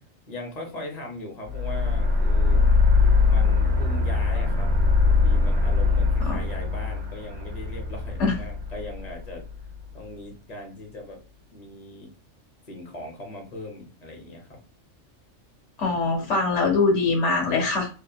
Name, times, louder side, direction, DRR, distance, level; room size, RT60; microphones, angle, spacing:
voice 1, 0.3-2.6 3.3-4.7 5.0-9.4 9.9-11.2 11.5-12.1 12.7-14.6, left 1 dB, 40° left, 1 dB, 0.8 m, -39 dB
sound 1, 1.5-9.8, left 4 dB, 65° right, 1.2 m, -22 dB
voice 2, 15.8-17.9, left 3 dB, 75° left, 2 dB, 1.1 m, -22 dB
2.8 x 2.2 x 2.2 m, 0.36 s
omnidirectional pair, 1.2 m